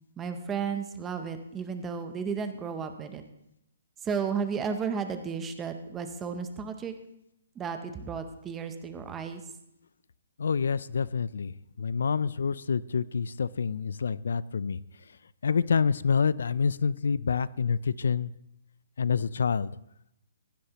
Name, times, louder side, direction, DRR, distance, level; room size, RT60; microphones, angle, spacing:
voice 1, 0.2-3.2 4.0-6.9 7.6-9.4, right 6 dB, 10° right, 7 dB, 0.6 m, -33 dB
voice 2, 10.4-14.8 15.4-18.3 19.0-19.7, left 6 dB, 70° left, 19 dB, 0.4 m, -27 dB
16.0 x 11.5 x 2.9 m, 0.82 s
hypercardioid pair, 180°, 0 cm